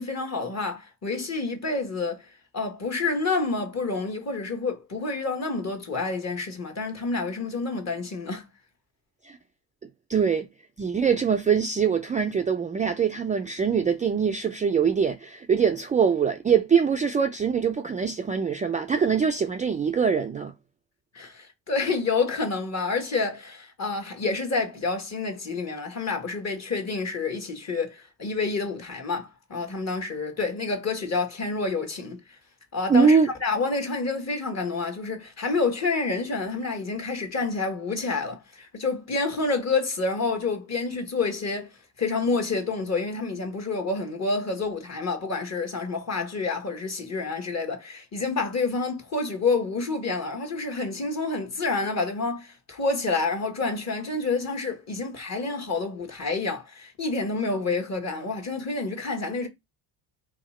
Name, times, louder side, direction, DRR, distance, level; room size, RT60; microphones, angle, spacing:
voice 1, 0.0-2.2 2.5-8.5 21.1-32.2 32.7-41.7 42.0-59.5, left 3 dB, 35° left, 1.3 m, -28 dB
voice 2, 10.1-10.5 10.8-20.5 32.9-33.3, right 6 dB, 20° right, 0.3 m, -23 dB
2.8 x 2.4 x 4.2 m
supercardioid pair, 75°, 43 cm